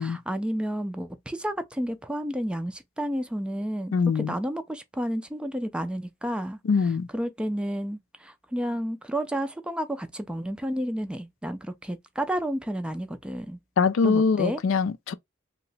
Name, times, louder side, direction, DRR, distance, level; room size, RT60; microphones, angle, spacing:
voice 1, 0.0-6.6 7.1-13.6 14.0-14.6, equal, 5° right, 0.4 m, -31 dB
voice 2, 3.9-4.3 6.6-7.1 13.8-15.1, left 5 dB, 70° left, 0.4 m, -23 dB
2.8 x 2.1 x 4.0 m
head